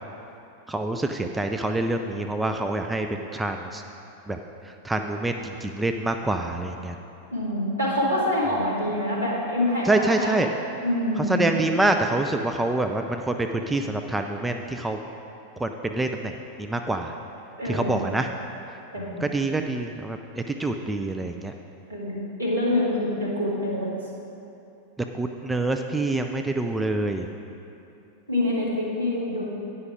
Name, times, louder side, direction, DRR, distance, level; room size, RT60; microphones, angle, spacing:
voice 1, 0.7-3.8 4.3-4.4 4.8-6.9 9.9-10.5 11.3-15.0 15.6-16.3 16.6-17.1 17.7-18.3 19.2-20.2 20.6-21.5 25.1-27.3, right 2 dB, 10° right, 5 dB, 0.4 m, -26 dB
voice 2, 7.3-10.3 10.8-11.4 17.6-18.1 18.9-19.3 21.9-23.9 28.3-29.5, left 1 dB, 80° right, -5 dB, 1.9 m, -26 dB
9.6 x 5.6 x 4.8 m, 2.8 s
figure-of-eight pair, 90°, 0 cm